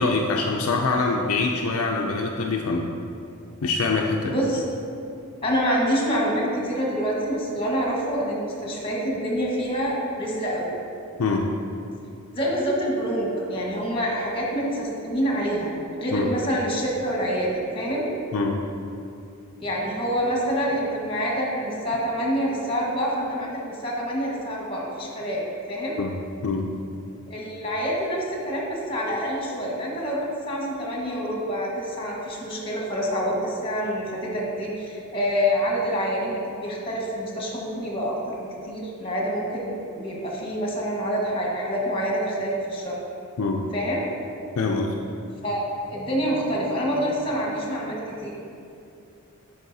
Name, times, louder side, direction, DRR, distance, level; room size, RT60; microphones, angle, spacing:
voice 1, 0.0-2.9 3.6-4.3 11.2-11.5 16.1-16.3 18.3-18.6 26.0-26.1 26.4-26.7 43.4-43.6 44.6-44.9, left 3 dB, 65° left, 0 dB, 0.4 m, -24 dB
voice 2, 4.2-4.6 5.4-10.7 12.3-15.7 16.0-18.1 19.6-26.0 27.3-43.0 43.7-44.1 45.4-45.6 45.9-48.3, equal, 25° left, -3 dB, 1.4 m, -27 dB
11.0 x 4.8 x 2.7 m, 2.6 s
head